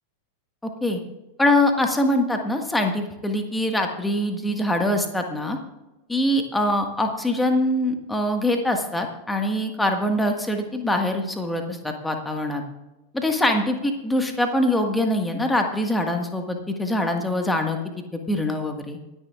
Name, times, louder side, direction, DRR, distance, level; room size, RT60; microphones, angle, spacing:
voice 1, 1.4-5.6 6.1-12.6 13.1-19.0, left 1 dB, 5° left, 4 dB, 1.7 m, -23 dB
27.5 x 9.9 x 2.5 m, 1.0 s
figure-of-eight pair, 90°, 0 cm